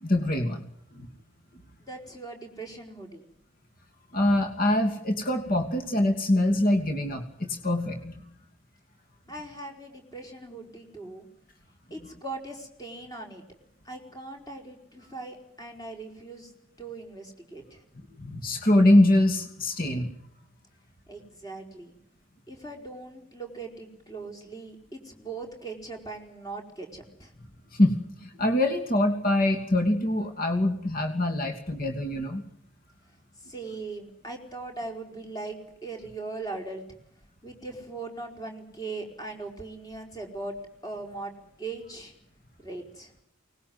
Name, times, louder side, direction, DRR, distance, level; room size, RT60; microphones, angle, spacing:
voice 1, 0.0-0.6 0.9-1.1 4.1-8.2 18.2-20.1 27.7-28.0 28.2-32.4, left 1 dB, 40° left, 6 dB, 2.8 m, -24 dB
voice 2, 1.8-3.3 9.3-11.3 11.9-13.4 13.8-16.5 16.8-17.8 21.1-21.9 22.5-27.3 33.4-36.8 37.4-40.6 40.8-41.3 41.6-42.1 42.6-43.1, right 3 dB, 15° left, 3 dB, 4.6 m, -40 dB
24.5 x 20.0 x 9.6 m, 0.74 s
head